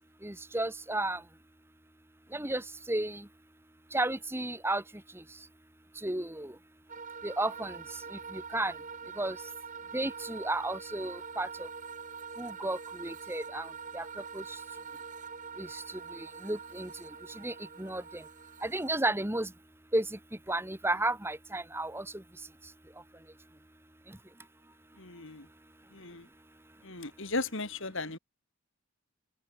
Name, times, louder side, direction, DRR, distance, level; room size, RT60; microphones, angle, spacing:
voice 1, 0.2-1.2 2.3-3.3 3.9-4.8 5.2-5.3 6.0-6.5 7.2-7.8 8.1-8.7 9.2-9.4 9.9-11.7 12.4-13.7 13.9-14.1 14.3-14.4 15.6-15.8 16.1-17.1 17.4-18.2 18.6-19.5 19.9-20.2 20.5-22.1, right 2 dB, 10° right, 1.8 m, -33 dB
sound 1, 6.9-19.0, right 5 dB, 35° right, 1.9 m, -44 dB
voice 2, 25.0-25.5 25.9-26.3 26.8-28.2, left 3 dB, 60° left, 3.0 m, -36 dB
open air
head